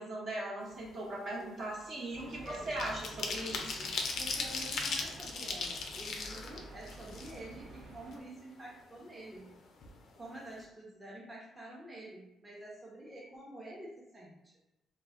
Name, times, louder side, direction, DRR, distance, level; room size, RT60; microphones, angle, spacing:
voice 1, 0.0-3.9, right 1 dB, 55° right, -4 dB, 0.9 m, -39 dB
sound 1, 0.7-1.0 1.3-7.7 8.1-8.2 8.5-9.5 9.8-10.0 10.3-10.6, left 4 dB, 65° left, 0.4 m, -38 dB
sound 2, 2.1-8.2, right 1 dB, 85° right, 0.5 m, -50 dB
voice 2, 2.2-2.7 4.2-9.5 10.2-14.5, right 1 dB, 20° right, -5 dB, 0.7 m, -48 dB
2.3 x 2.1 x 3.5 m, 0.88 s
cardioid pair, 90°, 0 cm